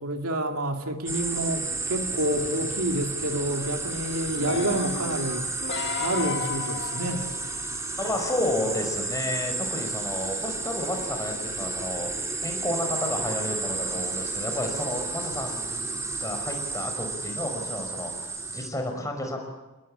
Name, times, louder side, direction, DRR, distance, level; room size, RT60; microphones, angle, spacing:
voice 1, 0.0-5.5 6.0-7.3, right 1 dB, 80° right, 4 dB, 2.5 m, -28 dB
sound 1, 1.1-18.7, right 3 dB, 15° right, 3.4 m, -32 dB
sound 2, 4.3-7.9 8.5-8.6, left 6 dB, 50° left, 2.1 m, -34 dB
voice 2, 8.0-12.1 12.4-19.4, left 1 dB, 15° left, 4 dB, 5.3 m, -31 dB
28.5 x 20.0 x 8.7 m, 1.1 s
head